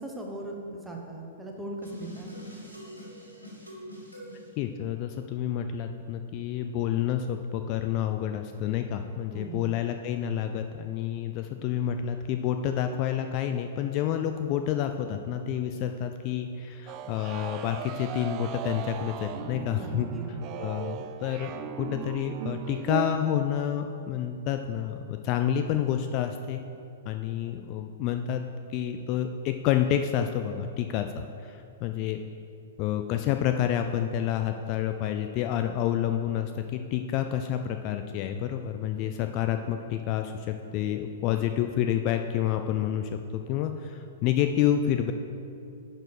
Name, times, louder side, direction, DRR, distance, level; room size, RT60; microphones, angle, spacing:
voice 1, 0.0-2.3 9.3-9.7 19.7-20.6, right 1 dB, 5° right, 0 dB, 1.1 m, -39 dB
sound 1, 1.8-4.5, equal, 90° left, 2.0 m, -43 dB
voice 2, 4.6-21.5 21.8-26.6 27.1-28.4 28.7-31.1 31.4-32.2 32.8-40.5 40.7-43.2 43.5-45.1, left 10 dB, 35° left, 7 dB, 0.3 m, -29 dB
sound 2, 16.9-23.2, right 10 dB, 35° right, 0.4 m, -37 dB
10.5 x 4.2 x 4.8 m, 2.5 s
figure-of-eight pair, 105°, 0 cm